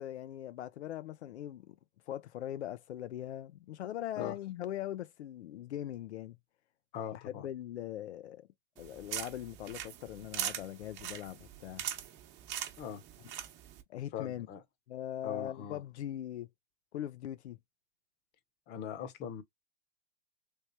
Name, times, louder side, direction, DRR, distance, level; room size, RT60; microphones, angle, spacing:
voice 1, 0.0-1.8 2.1-6.4 7.1-8.5 8.8-11.8 13.9-14.5 14.9-16.5 16.9-17.6, left 12 dB, 85° left, 0.5 m, -41 dB
voice 2, 6.9-7.5 12.8-13.0 14.1-14.6 15.2-15.8 18.7-19.4, left 8 dB, 30° left, 0.8 m, -40 dB
sound 1, 8.8-13.8, right 11 dB, 35° right, 0.9 m, -41 dB
3.3 x 3.2 x 2.7 m
hypercardioid pair, 120°, 33 cm